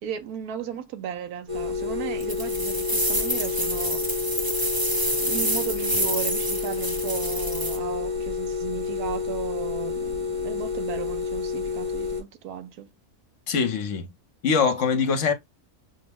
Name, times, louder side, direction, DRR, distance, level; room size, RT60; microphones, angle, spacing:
voice 1, 0.0-4.2 5.2-12.9, right 9 dB, 90° right, 1.2 m, -35 dB
sound 1, 1.5-12.2, left 4 dB, 60° right, 1.9 m, -29 dB
sound 2, 2.2-7.8, right 1 dB, 20° right, 0.6 m, -28 dB
voice 2, 13.5-14.1 14.4-15.3, left 6 dB, 60° left, 1.0 m, -23 dB
6.0 x 2.1 x 3.3 m
omnidirectional pair, 1.5 m